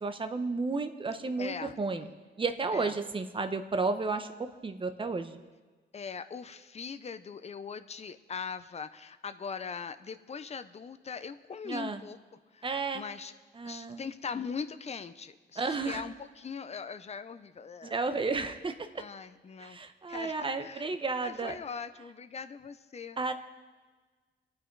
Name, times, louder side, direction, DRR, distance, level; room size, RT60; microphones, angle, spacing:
voice 1, 0.0-2.1 2.4-5.4 11.6-12.0 12.6-13.0 13.6-14.0 15.6-16.0 17.8-19.0 19.6-21.5 23.2-23.3, right 4 dB, 25° right, 8 dB, 1.0 m, -32 dB
voice 2, 1.4-2.1 2.7-3.0 5.9-12.2 12.5-12.7 12.9-13.3 13.7-18.0 19.0-19.8 20.1-20.9 21.2-23.2, left 6 dB, 35° left, 11 dB, 0.7 m, -41 dB
26.5 x 9.6 x 4.7 m, 1.4 s
wide cardioid pair, 150°, 19 cm